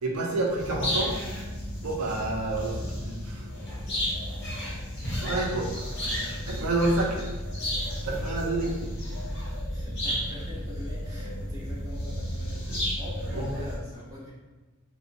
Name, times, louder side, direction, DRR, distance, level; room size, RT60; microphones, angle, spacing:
voice 1, 0.0-1.1 1.8-3.5 5.2-6.0 6.5-7.2 8.0-8.7 12.7-12.8 13.3-13.5, right 2 dB, 90° right, -1 dB, 0.5 m, -29 dB
sound 1, 0.6-13.8, equal, 50° left, 0.9 m, -33 dB
voice 2, 9.7-14.3, left 1 dB, 15° right, -8 dB, 0.7 m, -43 dB
2.8 x 2.2 x 2.5 m, 1.3 s
head